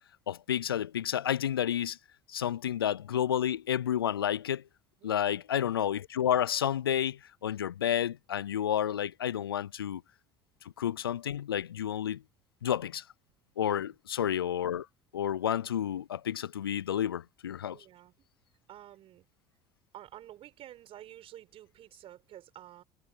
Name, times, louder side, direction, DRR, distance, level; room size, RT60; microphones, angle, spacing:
voice 1, 0.3-2.0 2.3-4.6 5.0-10.0 10.8-12.2 12.6-13.0 13.6-14.9 15.1-17.8, left 10 dB, 85° left, 0.5 m, -30 dB
voice 2, 5.0-5.4 13.7-14.0 17.7-18.1 18.7-19.2 19.9-22.8, right 12 dB, 50° right, 5.9 m, -50 dB
hypercardioid pair, 65°, 12 cm